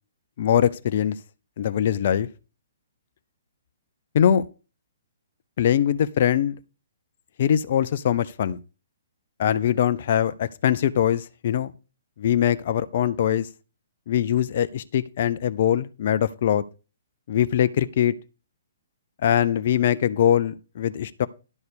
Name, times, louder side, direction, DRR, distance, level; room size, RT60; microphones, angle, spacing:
voice 1, 0.4-1.2 1.6-2.3 4.1-4.4 5.6-6.6 7.4-8.6 9.4-11.7 12.2-13.5 14.1-16.6 17.3-18.1 19.2-21.3, left 10 dB, 50° left, 0.6 m, -22 dB
11.0 x 4.2 x 6.9 m
figure-of-eight pair, 125°, 0 cm